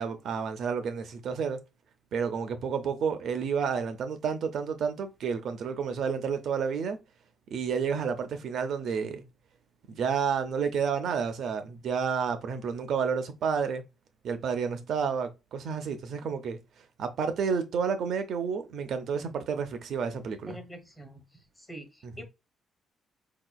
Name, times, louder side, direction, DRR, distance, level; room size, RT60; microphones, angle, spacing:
voice 1, 0.0-1.6 2.1-7.0 7.5-9.2 9.9-13.8 14.2-16.6 17.0-20.6 22.0-22.2, right 6 dB, 70° right, 0.6 m, -30 dB
voice 2, 20.5-21.2 21.6-21.9 22.2-22.3, right 1 dB, 15° left, 1.1 m, -44 dB
4.0 x 2.9 x 2.3 m
cardioid pair, 90°, 0 cm